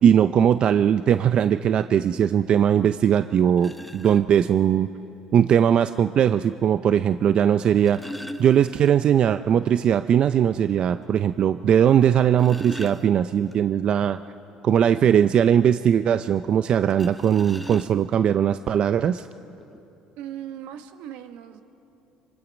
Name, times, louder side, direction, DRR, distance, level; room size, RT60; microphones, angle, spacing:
voice 1, 0.0-4.9 5.3-8.1 8.4-14.2 14.6-19.3, right 9 dB, 50° right, 11 dB, 0.5 m, -20 dB
sound 1, 3.6-4.2 5.6-5.7 7.5-9.2 9.6-9.7 10.1-10.2 10.7-10.8 12.0-13.5 16.9-18.2 19.1-19.2 19.6-19.8, equal, ahead, 1.0 m, -39 dB
voice 2, 20.2-21.6, right 10 dB, 80° right, 8 dB, 1.3 m, -38 dB
26.0 x 25.0 x 5.2 m, 2.9 s
cardioid pair, 105°, 2 cm